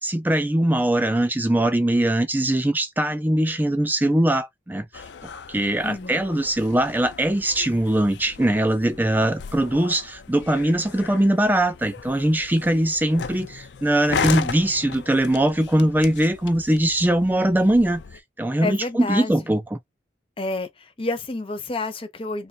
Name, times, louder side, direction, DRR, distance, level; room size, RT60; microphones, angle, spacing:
voice 1, 0.0-4.8 5.5-18.0 18.4-19.8, right 1 dB, 10° right, 0.4 m, -21 dB
sound 1, 4.9-18.2, left 6 dB, 70° left, 0.4 m, -36 dB
voice 2, 5.8-6.2 18.6-19.5 20.4-22.5, left 2 dB, 30° left, 0.7 m, -29 dB
3.2 x 2.3 x 4.1 m
head